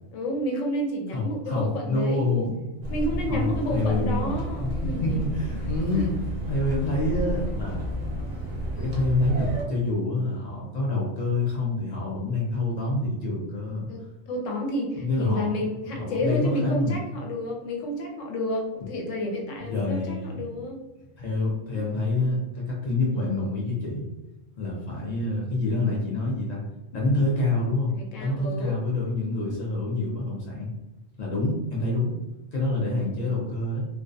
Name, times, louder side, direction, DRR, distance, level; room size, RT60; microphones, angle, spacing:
voice 1, 0.1-2.3 2.9-5.2 5.9-6.0 13.9-20.8 27.9-28.8, left 1 dB, 80° left, 1 dB, 1.0 m, -30 dB
voice 2, 1.1-2.6 3.3-6.2 6.5-7.8 8.8-13.9 14.9-15.5 15.9-17.0 19.6-20.4 21.2-24.0 24.6-26.6 26.9-27.9 28.2-30.7 31.2-32.2 32.5-33.9, left 2 dB, 60° left, -4 dB, 0.4 m, -27 dB
sound 1, 2.8-9.6, equal, 50° right, 0.5 m, -31 dB
2.2 x 2.2 x 2.5 m, 1.0 s
omnidirectional pair, 1.3 m